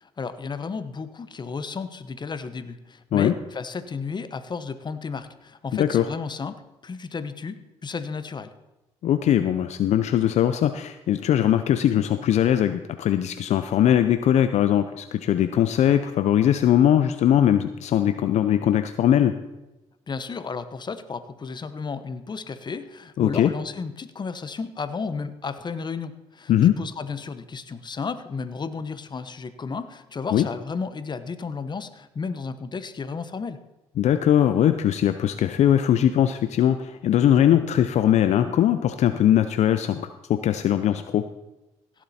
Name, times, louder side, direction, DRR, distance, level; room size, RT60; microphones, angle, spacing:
voice 1, 0.0-8.5 20.1-33.6, left 5 dB, 35° left, 12 dB, 1.0 m, -33 dB
voice 2, 5.7-6.0 9.0-19.3 23.2-23.5 26.5-26.7 30.3-30.5 34.0-41.3, left 10 dB, 65° left, 10 dB, 0.6 m, -20 dB
16.5 x 7.5 x 4.3 m, 1.0 s
supercardioid pair, 65°, 12 cm